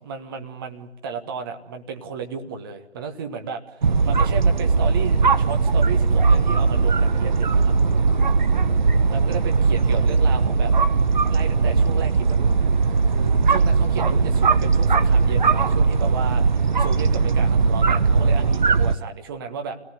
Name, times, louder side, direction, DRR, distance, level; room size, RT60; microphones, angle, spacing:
voice 1, 0.0-7.7 9.1-10.7 11.3-12.5 13.1-19.8, right 6 dB, 20° right, 5 dB, 1.5 m, -34 dB
sound 1, 3.8-18.9, right 4 dB, 40° right, 0.9 m, -19 dB
28.0 x 18.5 x 9.6 m, 0.94 s
figure-of-eight pair, 150°, 36 cm